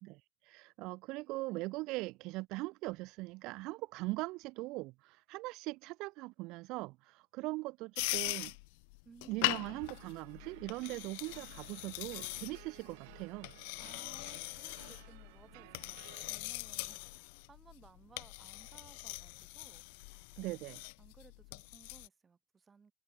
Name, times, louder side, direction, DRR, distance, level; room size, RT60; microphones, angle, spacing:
voice 1, 0.0-8.5 9.3-13.5 20.4-20.8, right 22 dB, 55° right, 0.5 m, -41 dB
sound 1, 8.0-22.1, left 30 dB, 80° left, 1.2 m, -41 dB
voice 2, 9.0-9.7 13.8-17.1 17.5-19.8 20.4-22.9, right 5 dB, 15° right, 5.1 m, -61 dB
sound 2, 9.5-16.4, right 28 dB, 85° right, 4.8 m, -57 dB
open air
cardioid pair, 165°, 0 cm